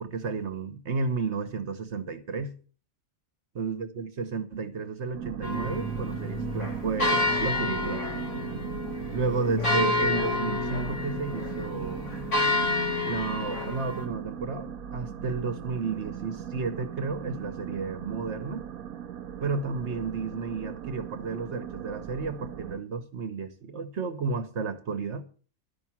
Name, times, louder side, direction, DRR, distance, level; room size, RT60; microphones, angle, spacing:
voice 1, 0.0-2.5 3.5-8.3 9.1-12.1 13.0-18.7 19.4-25.2, right 4 dB, 55° right, 1.2 m, -32 dB
sound 1, 5.1-22.8, right 8 dB, 80° right, 1.2 m, -38 dB
sound 2, 5.4-14.0, left 2 dB, 55° left, 2.9 m, -29 dB
12.0 x 6.0 x 7.1 m
omnidirectional pair, 1.5 m